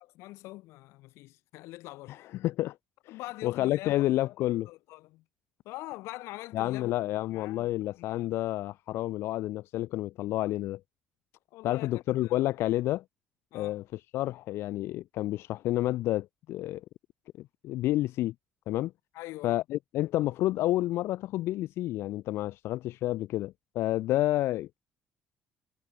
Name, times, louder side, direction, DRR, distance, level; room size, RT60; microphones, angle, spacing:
voice 1, 0.2-2.2 3.1-4.1 4.7-5.2 5.7-6.9 7.3-7.7 8.1-8.3 11.5-12.4 13.5-13.8 19.1-19.6, left 19 dB, 85° left, 5.5 m, -43 dB
voice 2, 2.1-2.8 3.1-4.7 6.5-10.8 11.6-13.0 13.5-16.8 17.4-18.3 18.7-18.9 19.4-24.8, left 15 dB, 65° left, 2.4 m, -30 dB
cardioid pair, 170°, 5 cm